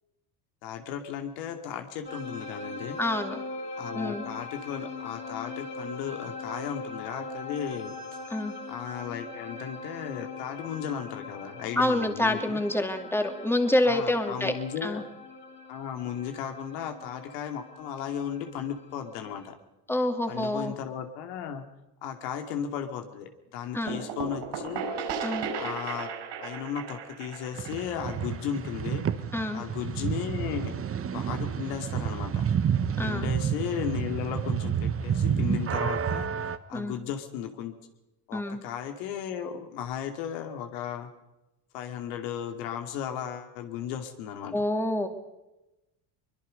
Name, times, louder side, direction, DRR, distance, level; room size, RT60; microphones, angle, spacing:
voice 1, 0.6-3.0 3.8-7.9 8.7-12.6 13.8-15.0 15.7-19.6 20.3-21.7 22.0-24.9 25.6-26.1 26.4-29.1 29.5-30.7 31.1-32.5 33.0-36.3 36.7-37.7 38.3-41.1 41.7-44.6, left 8 dB, 80° left, 5 dB, 2.5 m, -35 dB
sound 1, 2.1-19.5, left 3 dB, 25° left, 4.0 m, -41 dB
voice 2, 3.0-3.4 3.9-4.2 8.3-8.5 11.8-14.5 14.8-15.0 19.9-20.7 23.7-24.0 25.2-25.5 29.3-29.6 33.0-33.3 36.7-37.0 38.3-38.6 44.5-45.1, left 1 dB, 5° left, 5 dB, 2.4 m, -27 dB
sound 2, 23.9-29.4, right 5 dB, 60° right, 4.9 m, -36 dB
sound 3, 27.6-36.6, right 8 dB, 30° right, 1.1 m, -29 dB
23.0 x 22.0 x 5.3 m, 0.98 s
supercardioid pair, 95°, 47 cm